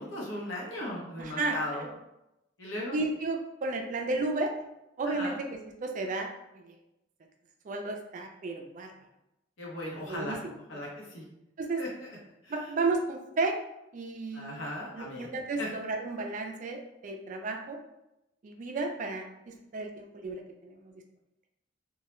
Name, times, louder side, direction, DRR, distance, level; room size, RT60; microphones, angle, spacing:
voice 1, 0.0-1.8 2.6-3.0 5.0-5.4 9.6-10.4 10.7-11.2 11.8-11.9 12.4-12.5 14.3-15.3 15.6-15.7, left 1 dB, 85° left, -3 dB, 0.8 m, -37 dB
voice 2, 1.2-1.9 2.9-4.5 5.0-6.8 7.6-8.9 10.0-10.9 11.6-11.8 12.5-13.6 13.9-14.6 14.9-17.8 18.4-20.9, right 3 dB, 45° right, 3 dB, 0.3 m, -33 dB
2.2 x 2.0 x 2.9 m, 0.89 s
head